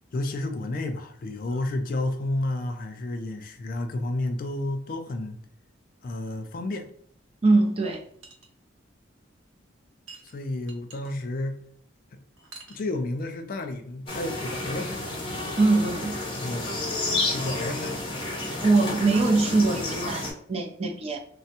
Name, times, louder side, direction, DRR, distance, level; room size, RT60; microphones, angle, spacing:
voice 1, 0.1-5.4 6.0-6.9 10.2-11.6 12.7-15.1 16.4-16.7 17.2-18.2, left 2 dB, 45° left, 0.3 m, -31 dB
voice 2, 7.4-8.0 15.6-16.2 18.6-21.2, right 3 dB, 30° right, 0.4 m, -22 dB
sound 1, 8.2-8.5 10.1-11.1 12.4-12.9, right 3 dB, 80° right, 0.6 m, -46 dB
sound 2, 14.1-20.3, left 2 dB, 25° left, 0.7 m, -31 dB
3.3 x 2.0 x 2.7 m
head